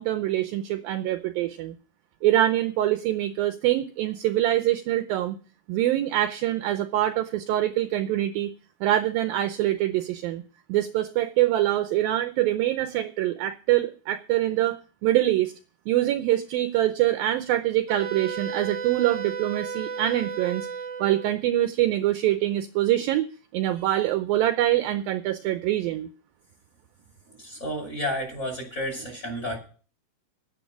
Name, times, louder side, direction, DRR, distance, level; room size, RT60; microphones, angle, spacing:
voice 1, 0.0-1.8 2.2-5.4 5.7-8.5 8.8-10.4 10.7-15.5 15.9-20.7 21.0-26.1, right 14 dB, 80° right, 8 dB, 2.2 m, -24 dB
Wind instrument woodwind instrument, 17.9-21.3, right 6 dB, 60° right, 1.6 m, -34 dB
voice 2, 27.3-29.6, equal, 15° left, 1 dB, 5.9 m, -31 dB
11.0 x 9.7 x 6.0 m, 0.39 s
omnidirectional pair, 4.7 m